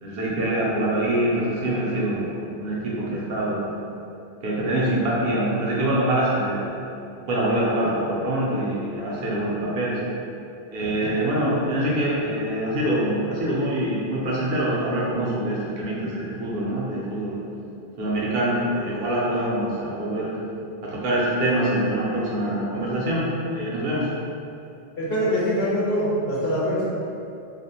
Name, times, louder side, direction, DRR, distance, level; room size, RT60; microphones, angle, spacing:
voice 1, 0.0-3.8 4.4-6.7 7.3-10.0 10.7-17.4 18.0-20.3 20.8-24.1, right 1 dB, 70° right, -6 dB, 0.8 m, -24 dB
voice 2, 25.0-26.9, equal, 70° left, -7 dB, 0.8 m, -23 dB
2.5 x 2.0 x 2.7 m, 2.6 s
omnidirectional pair, 1.0 m